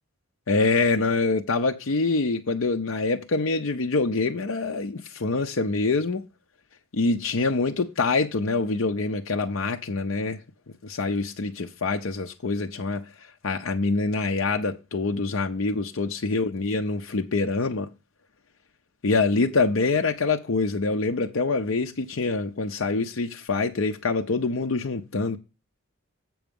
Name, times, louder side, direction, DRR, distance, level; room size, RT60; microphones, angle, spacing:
voice 1, 0.5-6.2 6.9-10.4 10.8-17.9 19.0-25.4, left 3 dB, 70° left, 0.7 m, -25 dB
7.8 x 6.1 x 5.3 m
head